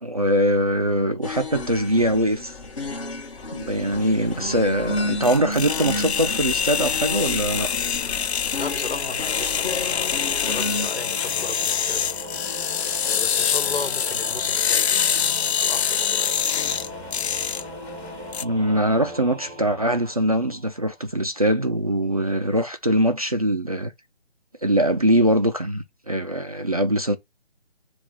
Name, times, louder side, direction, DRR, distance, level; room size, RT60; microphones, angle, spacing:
voice 1, 0.0-2.5 3.5-7.7 18.4-23.9 24.6-27.2, right 1 dB, 35° right, 0.4 m, -22 dB
sound 1, 1.2-10.9, left 2 dB, 30° left, 1.6 m, -32 dB
sound 2, 3.7-18.4, left 8 dB, 75° left, 0.5 m, -25 dB
Singing / Musical instrument, 8.5-21.0, right 1 dB, 20° right, 0.8 m, -38 dB
voice 2, 8.6-12.1 13.0-16.4, left 4 dB, 60° left, 1.4 m, -35 dB
7.2 x 2.4 x 5.5 m
figure-of-eight pair, 165°, 33 cm